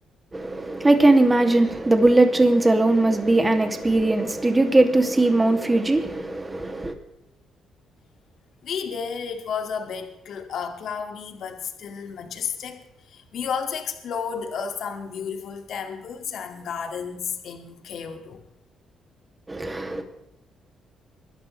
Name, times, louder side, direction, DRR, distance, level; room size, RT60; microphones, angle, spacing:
voice 1, 0.3-6.9 19.5-20.0, right 2 dB, 20° right, 2.5 m, -19 dB
voice 2, 8.6-18.4, left 6 dB, 70° left, 2.3 m, -32 dB
24.5 x 12.0 x 3.3 m
cardioid pair, 90°, 0 cm